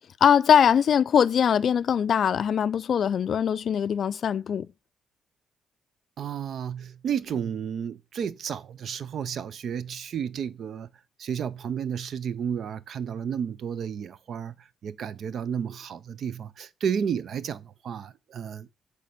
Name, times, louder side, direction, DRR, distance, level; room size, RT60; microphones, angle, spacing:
voice 1, 0.2-4.7, left 8 dB, 60° left, 0.3 m, -21 dB
voice 2, 6.2-10.9 11.2-14.6 14.8-18.7, right 8 dB, 65° right, 0.5 m, -32 dB
8.3 x 3.4 x 5.2 m
cardioid pair, 100°, 0 cm